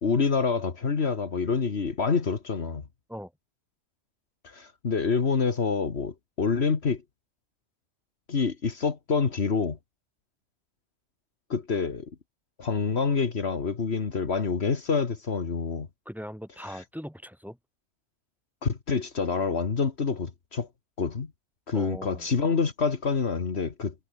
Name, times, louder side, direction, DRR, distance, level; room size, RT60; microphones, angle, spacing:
voice 1, 0.0-2.8 4.4-7.0 8.3-9.8 11.5-12.1 12.6-15.9 16.7-16.8 18.6-20.7 21.0-21.3 21.7-23.9, left 5 dB, 65° left, 1.9 m, -27 dB
voice 2, 16.1-17.6 21.7-22.3, equal, ahead, 6.9 m, -40 dB
omnidirectional pair, 1.2 m